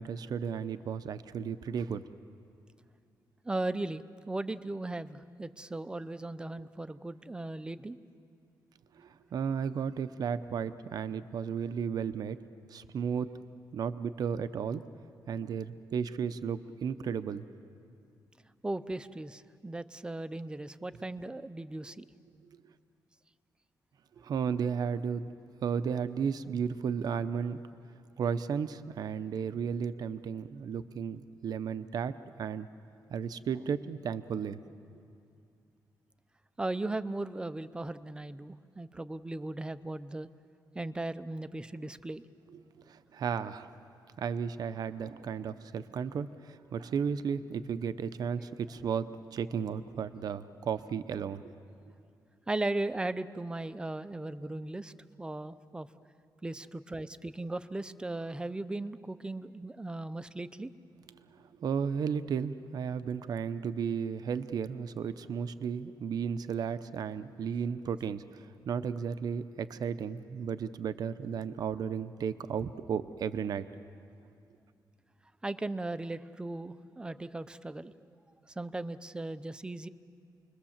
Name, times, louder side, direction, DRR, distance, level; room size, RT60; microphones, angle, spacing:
voice 1, 0.0-2.0 9.0-12.4 12.7-13.3 13.7-14.8 15.3-17.5 24.2-25.2 25.6-27.6 28.2-32.7 33.1-34.6 42.5-42.6 42.9-43.7 44.2-51.4 61.4-73.7, right 7 dB, 60° right, 12 dB, 0.7 m, -34 dB
voice 2, 3.4-8.0 18.6-22.1 36.6-40.3 40.7-42.3 52.5-54.9 55.2-55.9 56.4-60.7 75.4-77.9 78.6-79.9, right 2 dB, 10° right, 14 dB, 0.6 m, -37 dB
29.0 x 21.5 x 7.3 m, 2.4 s
wide cardioid pair, 160°, 8 cm